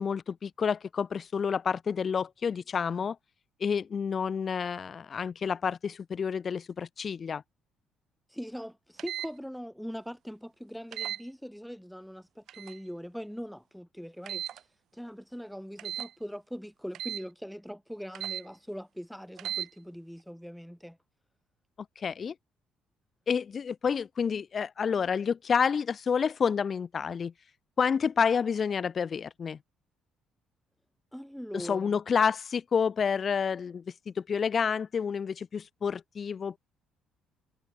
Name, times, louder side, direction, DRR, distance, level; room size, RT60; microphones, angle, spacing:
voice 1, 0.0-3.2 3.6-7.4 22.0-22.3 23.3-27.3 27.8-29.6 31.5-36.6, left 6 dB, 35° left, 0.5 m, -29 dB
voice 2, 8.3-21.0 31.1-32.0, equal, ahead, 3.4 m, -41 dB
sound 1, 9.0-9.3 10.9-11.2 12.5-12.8 14.3-14.6 15.8-16.1 16.9-17.2 18.1-18.4 19.4-19.7, right 11 dB, 60° right, 0.8 m, -36 dB
cardioid pair, 140°, 0 cm